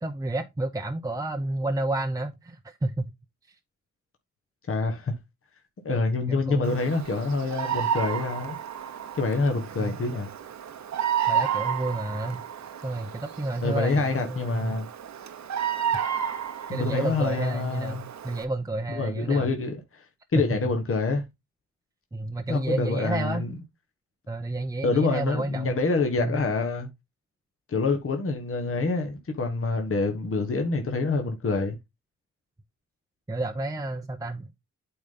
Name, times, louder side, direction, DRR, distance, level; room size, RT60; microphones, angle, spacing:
voice 1, 0.0-3.1 3.5-3.6 6.3-6.8 9.8-10.0 11.3-12.4 12.8-14.8 16.7-19.5 20.3-20.5 22.1-23.5 24.3-25.7 26.2-26.4 33.3-34.5, right 2 dB, 10° right, 0.8 m, -30 dB
voice 2, 4.7-5.1 5.8-8.6 9.1-10.3 13.6-14.9 16.7-18.1 18.9-20.0 20.3-21.2 22.5-23.6 24.8-26.9 27.7-31.8, left 3 dB, 50° left, 1.5 m, -26 dB
Bird vocalization bird call bird song, 6.6-18.4, right 9 dB, 70° right, 1.1 m, -32 dB
8.5 x 4.0 x 3.8 m
cardioid pair, 65°, 29 cm